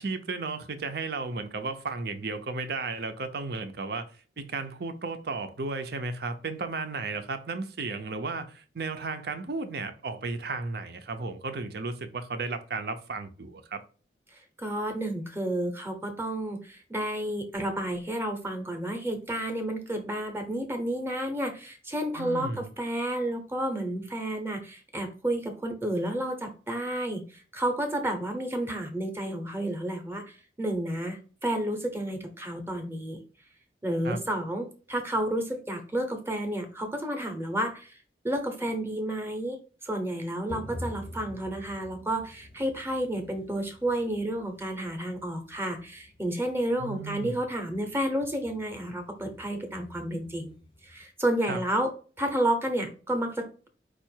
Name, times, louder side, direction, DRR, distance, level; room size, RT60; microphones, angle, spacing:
voice 1, 0.0-4.1 4.4-13.8 22.2-22.7 34.0-34.2 46.8-47.4 51.5-51.6, right 3 dB, 60° right, 0.6 m, -34 dB
voice 2, 14.6-30.2 30.6-33.2 33.8-38.0 38.2-39.6 39.8-50.5 50.8-51.9 52.2-53.7, right 1 dB, 15° right, 0.8 m, -31 dB
sound 1, 40.5-51.0, left 1 dB, 30° left, 0.6 m, -47 dB
4.6 x 2.5 x 4.4 m
head